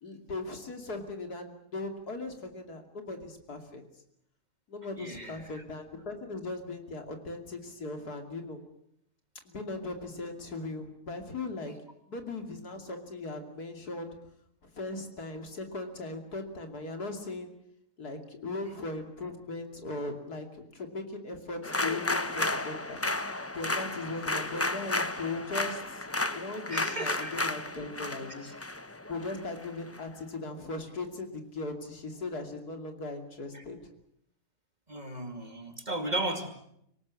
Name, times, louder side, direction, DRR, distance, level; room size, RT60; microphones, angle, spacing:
voice 1, 0.0-3.8 4.7-8.6 9.4-11.7 12.1-14.1 14.7-17.5 18.0-20.5 20.7-23.0 23.5-26.0 26.3-28.5 29.1-33.8, left 3 dB, 85° left, 5 dB, 3.3 m, -38 dB
voice 2, 5.0-5.6 26.7-27.4 28.3-28.5 33.5-33.6 34.9-36.5, right 1 dB, 30° right, 5 dB, 2.7 m, -35 dB
sound 1, 21.6-30.0, left 2 dB, 15° left, 0.5 m, -33 dB
25.0 x 18.5 x 8.4 m, 0.75 s
omnidirectional pair, 1.6 m